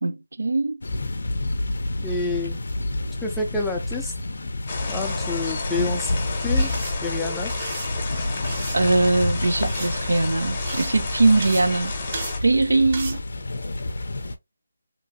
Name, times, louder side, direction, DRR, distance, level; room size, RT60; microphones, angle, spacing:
voice 1, 0.0-0.8 8.7-12.0 12.4-13.2, right 2 dB, 90° right, 0.4 m, -21 dB
sound 1, 0.8-14.4, left 2 dB, 65° left, 0.4 m, -29 dB
voice 2, 2.0-2.6 3.2-4.1 4.9-6.1 6.4-6.7 7.0-7.5, left 3 dB, 5° left, 0.4 m, -28 dB
sound 2, 4.7-12.4, left 3 dB, 25° left, 0.7 m, -32 dB
sound 3, 6.6-13.2, right 3 dB, 30° right, 0.7 m, -37 dB
2.8 x 2.5 x 2.5 m
figure-of-eight pair, 170°, 0 cm